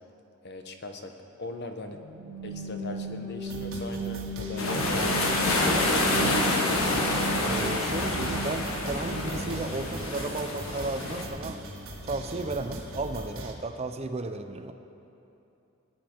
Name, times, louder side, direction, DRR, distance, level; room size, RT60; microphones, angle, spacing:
voice 1, 0.4-1.1 1.4-2.0 2.4-5.2, left 2 dB, 55° left, 5 dB, 1.1 m, -40 dB
sound 1, 1.9-9.7, right 2 dB, 25° left, 3.7 m, -36 dB
sound 2, 3.4-13.5, right 1 dB, 70° right, 1.8 m, -41 dB
sound 3, 4.6-11.2, left 2 dB, 85° left, 1.6 m, -27 dB
voice 2, 7.4-11.6 12.0-14.7, right 2 dB, 30° right, 7 dB, 0.7 m, -34 dB
21.5 x 9.3 x 4.6 m, 2.8 s
head